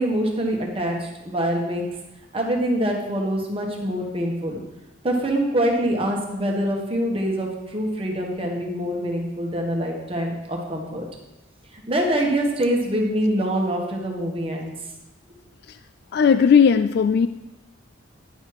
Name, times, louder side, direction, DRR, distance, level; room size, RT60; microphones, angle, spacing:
voice 1, 0.0-1.9 2.3-4.6 5.0-11.1 11.7-14.7, right 1 dB, 30° right, 0 dB, 1.4 m, -25 dB
voice 2, 16.1-17.3, left 6 dB, 55° left, 11 dB, 0.3 m, -16 dB
10.5 x 6.7 x 4.7 m, 0.96 s
head